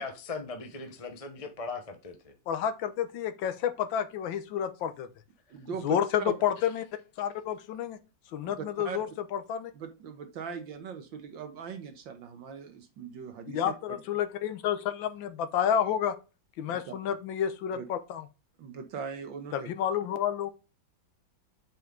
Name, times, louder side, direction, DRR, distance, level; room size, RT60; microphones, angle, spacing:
voice 1, 0.0-2.3, left 4 dB, 25° left, 0.9 m, -39 dB
voice 2, 2.5-5.1 5.8-6.9 7.2-8.0 8.3-9.7 13.5-16.1 16.6-18.2 19.5-20.5, left 9 dB, 75° left, 1.6 m, -30 dB
voice 3, 5.5-6.3 8.4-9.0 9.7-14.0 16.7-16.9 17.7-17.8 18.6-19.7, right 6 dB, 75° right, 1.8 m, -40 dB
7.5 x 5.3 x 3.8 m
omnidirectional pair, 2.1 m